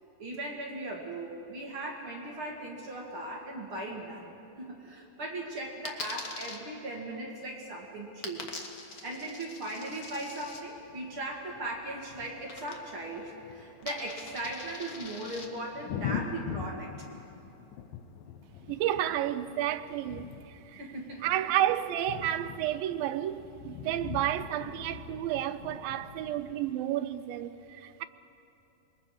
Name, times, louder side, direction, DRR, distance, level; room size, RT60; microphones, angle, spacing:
voice 1, 0.2-8.6 9.0-16.9 20.8-21.5, right 1 dB, 40° right, 2.5 m, -38 dB
Coin (dropping), 5.8-6.6 8.2-10.6 12.5-13.1 13.4-15.5, left 3 dB, 60° left, 0.9 m, -43 dB
sound 1, 10.4-26.7, left 8 dB, 85° left, 2.7 m, -43 dB
voice 2, 18.7-20.8 21.2-28.0, right 12 dB, 90° right, 2.5 m, -31 dB
26.0 x 22.5 x 4.9 m
omnidirectional pair, 4.0 m